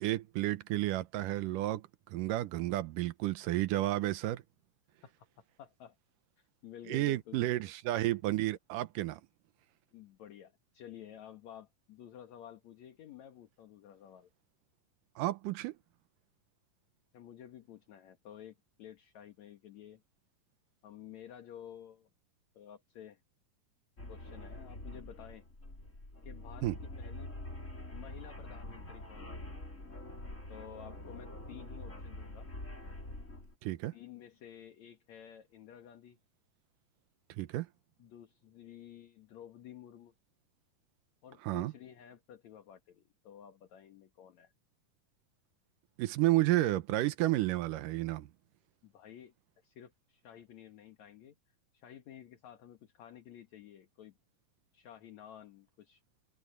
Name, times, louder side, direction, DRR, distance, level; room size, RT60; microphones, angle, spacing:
voice 1, 0.0-4.4 6.9-9.2 15.2-15.7 26.6-26.8 33.6-33.9 37.4-37.7 41.4-41.7 46.0-48.3, right 16 dB, 80° right, 2.4 m, -31 dB
voice 2, 5.0-6.0 6.4-7.6 9.9-14.3 17.1-20.0 20.8-22.1 22.5-23.2 24.1-25.5 26.2-27.3 27.9-29.5 30.5-32.5 33.9-36.2 38.0-40.1 41.2-44.5 48.8-49.3 49.6-51.4 51.7-54.2 54.7-56.0, left 10 dB, 60° left, 2.7 m, -52 dB
sound 1, 24.0-33.5, left 1 dB, 20° left, 5.2 m, -45 dB
omnidirectional pair, 3.9 m